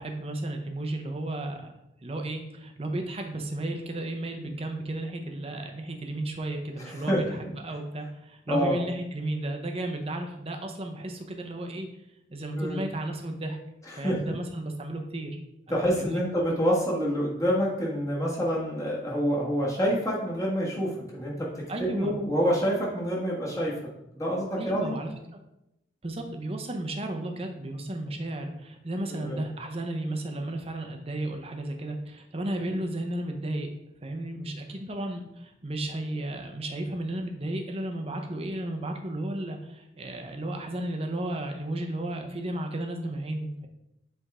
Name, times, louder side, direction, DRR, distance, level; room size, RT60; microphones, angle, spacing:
voice 1, 0.0-1.7 2.0-7.4 7.6-11.9 12.3-13.6 14.0-15.4 15.7-16.2 21.7-22.1 24.6-25.1 26.0-33.7 34.0-43.7, right 1 dB, 35° right, 4 dB, 0.8 m, -33 dB
voice 2, 6.8-7.4 8.5-8.8 12.6-12.8 13.9-14.3 15.7-23.7 24.1-24.9 29.2-29.4, equal, 20° left, -4 dB, 1.4 m, -27 dB
8.1 x 3.6 x 3.6 m, 0.84 s
head